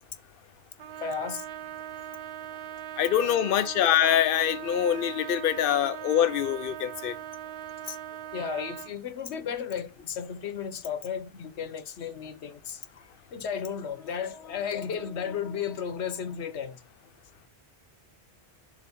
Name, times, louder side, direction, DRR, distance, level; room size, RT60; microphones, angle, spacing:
Trumpet, 0.8-9.0, right 12 dB, 75° right, 0.8 m, -40 dB
voice 1, 1.0-1.4 7.8-8.0 8.3-12.8 13.3-16.8, left 7 dB, 85° left, 1.1 m, -34 dB
voice 2, 3.0-7.2, left 10 dB, 65° left, 0.7 m, -24 dB
7.1 x 3.4 x 4.4 m
omnidirectional pair, 1.1 m